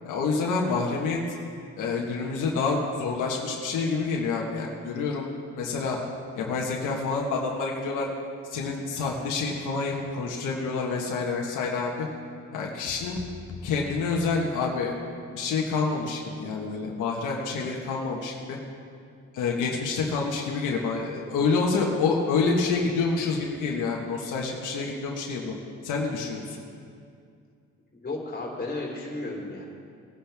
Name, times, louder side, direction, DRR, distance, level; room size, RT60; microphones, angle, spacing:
voice 1, 0.0-1.2 1.8-5.3 5.6-6.0 6.3-8.1 8.5-12.1 12.5-13.2 13.6-14.9 15.3-18.6 19.3-25.5 25.8-26.6, left 4 dB, 85° left, -1 dB, 1.5 m, -27 dB
sound 1, 12.9-15.1, left 5 dB, 45° left, 1.0 m, -43 dB
voice 2, 27.9-29.6, left 2 dB, 30° left, -1 dB, 3.4 m, -33 dB
19.5 x 10.5 x 3.6 m, 2.3 s
cardioid pair, 90°, 30 cm